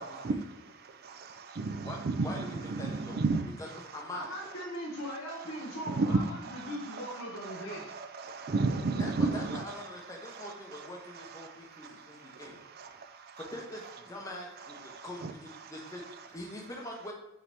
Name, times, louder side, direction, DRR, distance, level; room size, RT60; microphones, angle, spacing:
voice 1, 0.0-3.5 5.9-7.1 7.4-9.6 10.2-10.9 11.1-13.4 14.8-15.3 15.6-15.7, right 3 dB, 50° right, 0.4 m, -34 dB
voice 2, 1.8-3.2 3.6-4.3 9.0-12.5 13.4-17.1, left 1 dB, 15° left, 0.7 m, -43 dB
voice 3, 4.1-7.9, equal, 80° left, 0.9 m, -40 dB
5.0 x 2.9 x 3.4 m
head